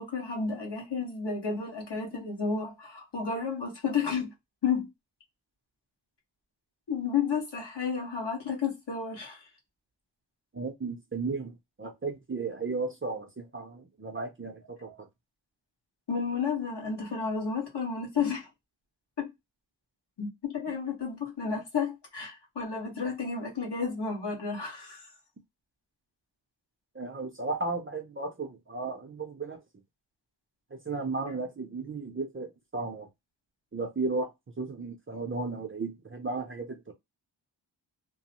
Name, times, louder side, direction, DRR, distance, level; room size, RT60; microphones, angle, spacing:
voice 1, 0.0-4.3 4.6-4.9 6.9-9.4 16.1-18.5 19.2-19.3 20.2-25.0, left 5 dB, 65° left, 1.3 m, -31 dB
voice 2, 10.5-15.1 26.9-29.6 30.7-33.1 33.7-34.3 34.6-36.9, right 3 dB, 30° right, 0.5 m, -34 dB
2.9 x 2.0 x 2.9 m
wide cardioid pair, 130°, 45 cm